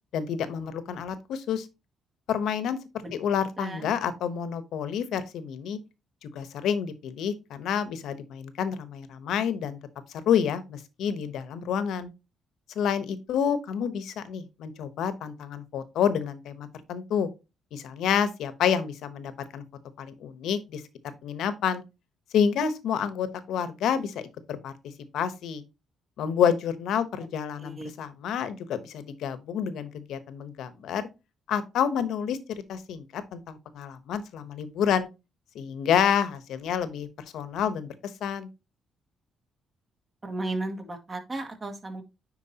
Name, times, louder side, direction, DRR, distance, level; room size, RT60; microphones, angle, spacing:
voice 1, 0.1-1.7 2.3-2.8 3.1-5.8 6.2-9.8 10.3-12.1 12.7-17.3 17.7-19.6 20.0-20.8 21.2-21.8 22.3-24.2 24.5-24.7 25.1-25.6 26.2-31.1 31.5-35.1 35.5-37.1 37.3-38.5, left 8 dB, 80° left, 0.9 m, -28 dB
voice 2, 3.6-3.9 27.6-27.9 40.2-42.0, right 2 dB, 30° right, 1.9 m, -34 dB
9.7 x 4.5 x 2.8 m
cardioid pair, 90°, 0 cm